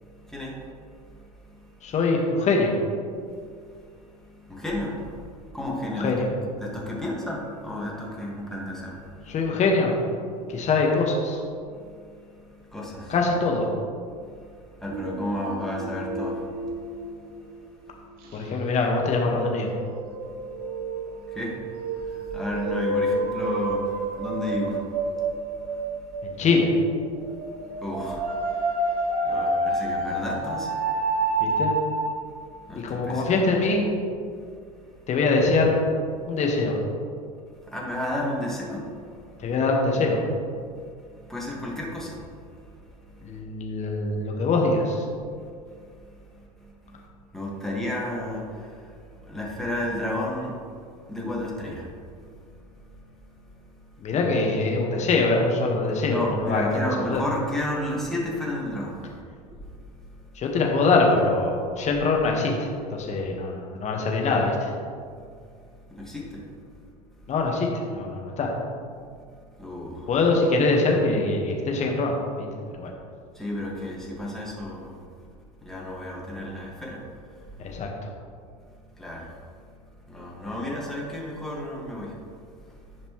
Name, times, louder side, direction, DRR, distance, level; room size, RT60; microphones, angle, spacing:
voice 1, 0.0-1.9 3.1-6.3 6.5-9.4 10.3-10.7 11.7-13.1 14.1-18.5 20.1-26.4 27.3-31.6 32.4-33.4 34.3-35.1 36.2-36.4 37.6-39.5 40.6-43.4 45.2-47.1 47.3-50.6 51.1-51.9 52.3-53.0 56.1-59.1 59.5-59.6 65.9-66.5 69.6-70.1 73.3-75.0 75.6-77.6 79.0-79.4 80.1-82.2 82.7-82.8, left 1 dB, ahead, -4 dB, 1.9 m, -34 dB
voice 2, 1.8-2.7 5.9-6.3 9.3-9.9 10.5-11.4 13.1-13.7 18.3-19.7 26.2-26.7 31.4-31.7 32.8-33.9 35.1-35.7 36.3-36.8 39.4-40.2 43.2-45.0 54.0-57.2 60.3-64.7 67.3-68.5 70.1-72.5 72.7-72.9 77.6-78.1, left 3 dB, 35° left, 0 dB, 1.6 m, -23 dB
sound 1, 14.9-17.8 18.2-18.4 19.3-26.7 26.9-32.1, right 2 dB, 50° right, 1.0 m, -29 dB
10.5 x 5.2 x 3.2 m, 2.2 s
hypercardioid pair, 85°, 19 cm